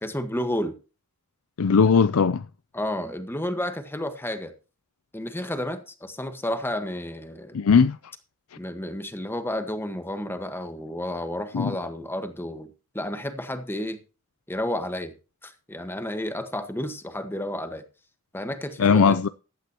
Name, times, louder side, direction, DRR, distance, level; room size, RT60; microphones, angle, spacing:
voice 1, 0.0-0.7 2.7-4.5 5.1-7.6 8.6-12.7 12.9-14.0 14.5-15.1 15.4-17.8 18.3-19.2, left 1 dB, 10° left, 1.4 m, -31 dB
voice 2, 1.6-2.4 7.5-8.0 11.5-11.7 18.8-19.3, left 5 dB, 75° left, 0.5 m, -18 dB
15.0 x 11.5 x 3.0 m
head